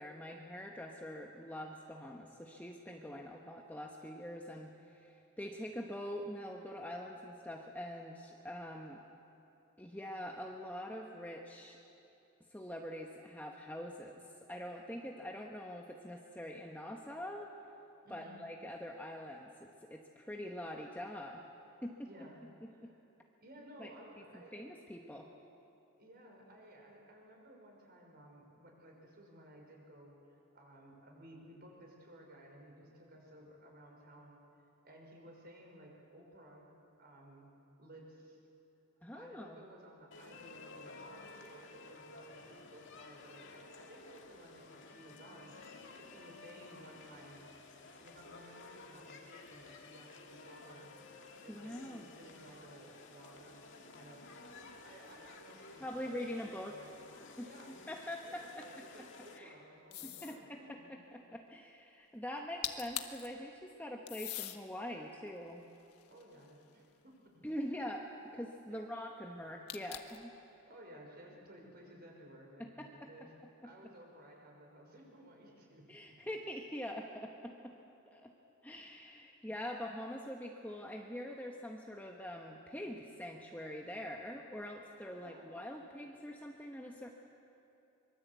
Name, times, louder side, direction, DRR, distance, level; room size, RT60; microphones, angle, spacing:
voice 1, 0.0-9.0 9.8-11.8 12.5-17.5 18.1-21.4 21.8-22.1 22.8-22.9 23.8-23.9 24.3-25.3 39.0-39.6 51.5-52.1 55.8-56.8 57.4-58.8 59.4-59.6 60.0-60.8 61.1-65.6 67.4-70.3 72.6-73.1 73.6-73.7 75.9-77.7 78.1-78.3 78.6-87.1, left 1 dB, 10° left, 1 dB, 1.1 m, -44 dB
voice 2, 18.0-18.4 22.0-23.0 23.4-24.5 26.0-36.7 37.0-37.5 37.8-38.4 39.1-45.6 46.0-47.5 47.9-50.9 51.4-54.3 54.8-56.4 56.6-56.9 57.4-57.8 58.2-60.9 66.1-67.4 68.7-68.9 70.7-73.3 73.6-75.9 85.1-85.6, right 1 dB, 45° right, 0 dB, 5.5 m, -56 dB
sound 1, 40.1-59.4, left 3 dB, 55° left, 2.1 m, -54 dB
sound 2, 59.9-60.4 62.4-62.5 62.6-63.3 64.1-64.6 65.3-66.7 69.7-70.3, left 12 dB, 90° left, 1.4 m, -42 dB
24.5 x 23.0 x 8.2 m, 2.8 s
head